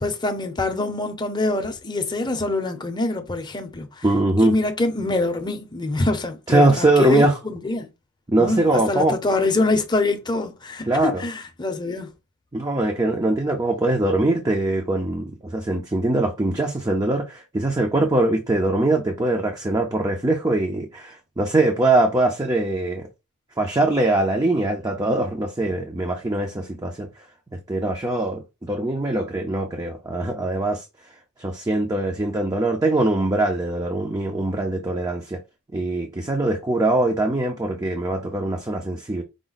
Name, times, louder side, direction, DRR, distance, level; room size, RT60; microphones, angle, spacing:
voice 1, 0.0-4.0 4.4-7.9 8.4-12.1, left 2 dB, 20° left, 0.7 m, -24 dB
voice 2, 4.0-4.5 6.5-7.4 8.3-9.2 10.9-11.2 12.5-23.1 23.6-27.1 27.7-30.8 31.4-35.4 35.7-39.2, right 2 dB, 15° right, 0.6 m, -22 dB
5.0 x 2.2 x 3.9 m
head